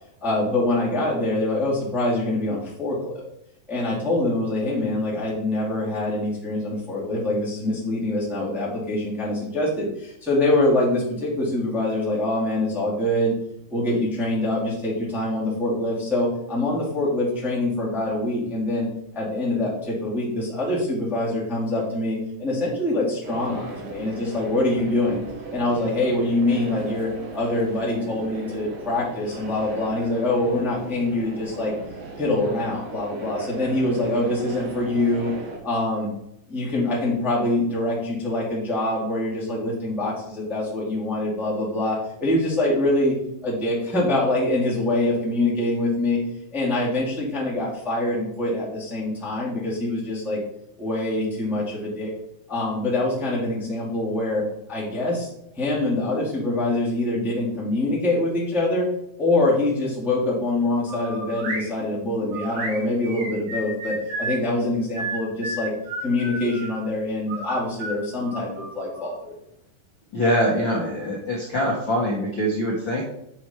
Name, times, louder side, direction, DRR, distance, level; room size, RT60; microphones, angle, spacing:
voice 1, 0.2-3.1 3.7-13.3 13.7-18.9 19.1-25.2 25.5-31.7 32.2-35.3 35.6-36.1 36.5-43.1 43.4-46.2 46.5-50.4 50.8-52.1 52.5-54.4 54.7-55.3 55.5-58.9 59.2-65.7 66.0-69.3, left 2 dB, ahead, -7 dB, 1.6 m, -24 dB
sound 1, 23.2-35.6, right 3 dB, 60° right, 1.9 m, -37 dB
sound 2, 60.9-61.7 62.3-64.4 64.9-66.8 67.3-69.1, right 2 dB, 85° right, 4.2 m, -32 dB
voice 2, 70.1-73.0, equal, 80° left, -3 dB, 1.0 m, -23 dB
7.9 x 4.7 x 4.5 m, 0.78 s
omnidirectional pair, 4.1 m